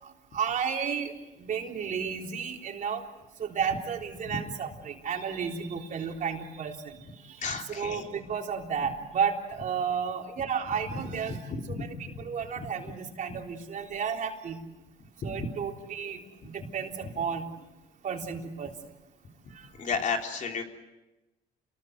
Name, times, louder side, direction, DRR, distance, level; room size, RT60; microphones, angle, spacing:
voice 1, 0.0-3.0 3.4-14.6 15.2-17.5 18.0-18.7 19.5-19.7, right 7 dB, 50° right, 2 dB, 3.7 m, -33 dB
voice 2, 7.4-8.0 11.3-11.8 12.6-12.7 15.2-15.5 19.8-20.6, left 5 dB, 50° left, 3 dB, 3.4 m, -32 dB
28.5 x 20.5 x 8.0 m, 1.0 s
cardioid pair, 110°, 17 cm